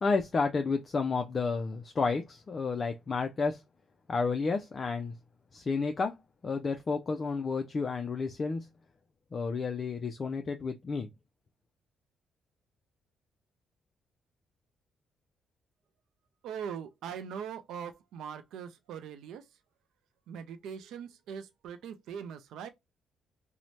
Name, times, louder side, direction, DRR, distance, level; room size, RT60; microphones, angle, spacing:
voice 1, 0.0-3.6 4.1-5.1 5.5-6.2 6.4-8.7 9.3-11.1, left 4 dB, 40° left, 0.3 m, -31 dB
voice 2, 16.4-19.5 20.3-22.7, right 7 dB, 85° right, 0.4 m, -41 dB
2.7 x 2.1 x 3.0 m
cardioid pair, 90°, 0 cm